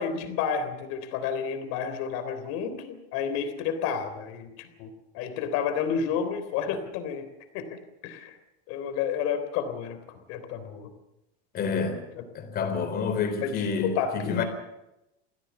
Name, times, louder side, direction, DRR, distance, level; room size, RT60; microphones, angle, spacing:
voice 1, 0.0-4.9 5.1-7.3 7.5-8.4 8.7-10.9 12.1-12.2 13.4-14.4, left 7 dB, 55° left, 9 dB, 3.5 m, -31 dB
voice 2, 11.5-12.0 12.3-14.4, left 5 dB, 30° left, 8 dB, 3.7 m, -28 dB
24.0 x 16.5 x 7.2 m, 0.92 s
cardioid pair, 165°, 30 cm